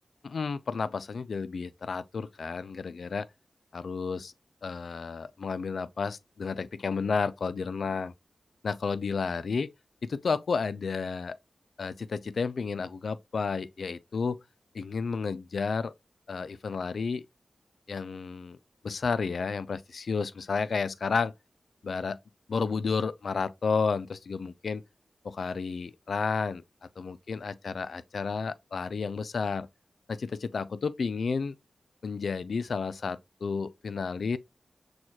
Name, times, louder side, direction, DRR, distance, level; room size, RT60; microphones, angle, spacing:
voice 1, 0.2-3.3 3.7-4.3 4.6-8.1 8.6-9.7 10.0-11.4 11.8-14.4 14.7-15.9 16.3-17.2 17.9-18.6 18.8-21.3 21.8-22.2 22.5-24.8 25.2-29.7 30.1-31.6 32.0-34.4, left 5 dB, 70° left, 0.3 m, -31 dB
6.2 x 2.3 x 2.7 m
cardioid pair, 65°, 0 cm